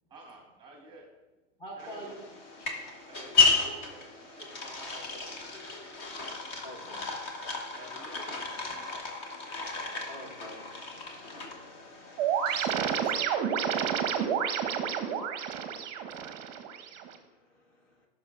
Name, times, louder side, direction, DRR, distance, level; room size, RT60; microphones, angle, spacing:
voice 1, 0.1-1.1 1.8-2.1 3.1-5.6 7.7-9.0, right 1 dB, 10° right, 1 dB, 1.2 m, -50 dB
voice 2, 1.6-2.1 6.6-7.2 10.1-12.3, equal, 15° left, -1 dB, 0.7 m, -47 dB
sound 1, 1.8-13.0, left 4 dB, 35° left, 1.2 m, -33 dB
sound 2, 12.2-17.2, right 8 dB, 35° right, 0.7 m, -30 dB
voice 3, 15.7-16.3 17.0-17.9, left 2 dB, 65° left, 0 dB, 1.6 m, -67 dB
14.0 x 5.7 x 2.4 m, 1.1 s
hypercardioid pair, 140°, 38 cm